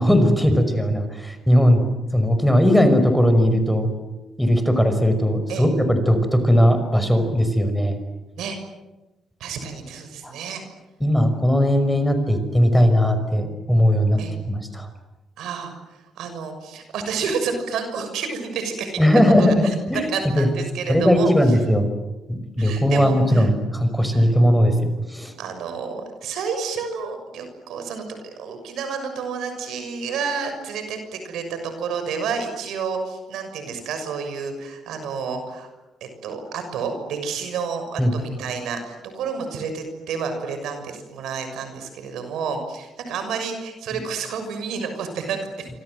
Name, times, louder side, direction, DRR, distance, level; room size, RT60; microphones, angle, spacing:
voice 1, 0.0-1.8 2.1-3.9 4.4-8.0 10.2-10.3 11.0-14.2 14.5-14.9 19.0-20.5 20.9-21.9 22.3-24.7 25.1-25.3 38.0-38.1 43.9-44.0, equal, 5° left, 8 dB, 5.5 m, -18 dB
voice 2, 9.4-10.6 14.2-14.3 15.4-15.7 16.1-21.3 22.6-23.5 24.1-24.3 25.4-35.7 36.0-45.7, right 5 dB, 80° right, 7 dB, 6.4 m, -30 dB
27.0 x 26.0 x 8.1 m, 1.1 s
cardioid pair, 90°, 0 cm